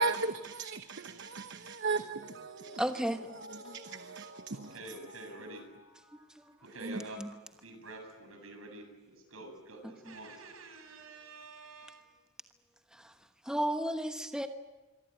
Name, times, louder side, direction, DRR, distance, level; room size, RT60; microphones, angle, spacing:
voice 1, 0.0-2.8 3.6-4.7 6.8-7.0, right 3 dB, 60° right, 1.0 m, -36 dB
Mallet percussion, 2.0-7.5 7.8-7.9, equal, 80° left, 7.7 m, -54 dB
voice 2, 2.8-3.3 6.3-6.4 7.2-7.3 12.9-13.1 13.4-14.5, right 1 dB, 5° right, 1.1 m, -33 dB
voice 3, 4.5-5.6 6.7-7.2 7.6-12.1, right 2 dB, 80° right, 7.5 m, -47 dB
26.0 x 24.0 x 9.2 m
head